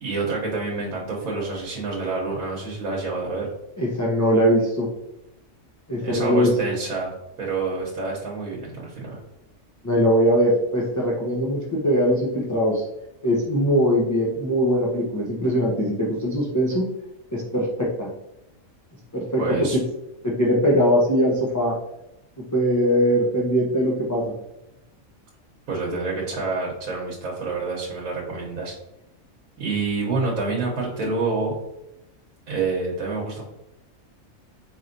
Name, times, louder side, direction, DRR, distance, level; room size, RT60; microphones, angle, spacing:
voice 1, 0.0-3.5 6.0-7.1 7.4-9.2 19.4-19.8 25.7-28.7 29.6-31.5 32.5-33.5, right 3 dB, 85° right, -3 dB, 1.3 m, -27 dB
voice 2, 3.8-4.9 5.9-6.5 9.8-12.8 13.2-16.8 17.3-18.1 19.1-19.4 20.2-21.8 22.5-24.3, equal, 30° left, -4 dB, 0.3 m, -21 dB
4.3 x 3.1 x 2.5 m, 0.87 s
omnidirectional pair, 1.4 m